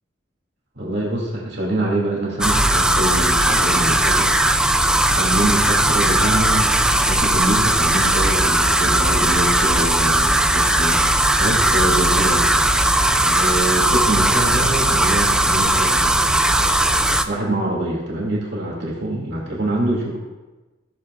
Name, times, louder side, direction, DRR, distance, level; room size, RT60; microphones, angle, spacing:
voice 1, 0.8-4.3 5.0-11.1 11.4-12.5 12.8-13.0 13.2-16.4 17.2-20.2, right 1 dB, 60° right, -3 dB, 2.2 m, -25 dB
sound 1, 2.4-17.2, right 1 dB, 5° right, 0.3 m, -18 dB
14.5 x 8.7 x 2.4 m, 1.1 s
head